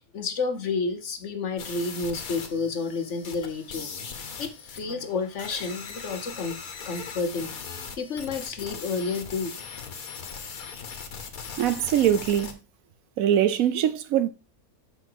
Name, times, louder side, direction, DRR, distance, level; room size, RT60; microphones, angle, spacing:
voice 1, 0.0-3.9 4.4-6.6 6.8-7.5 8.0-9.6, left 4 dB, 55° left, 1.3 m, -30 dB
sound 1, 1.6-12.5, left 5 dB, 70° left, 1.6 m, -39 dB
voice 2, 11.6-12.6 13.2-14.3, right 10 dB, 70° right, 1.0 m, -22 dB
6.8 x 6.0 x 4.7 m
omnidirectional pair, 1.5 m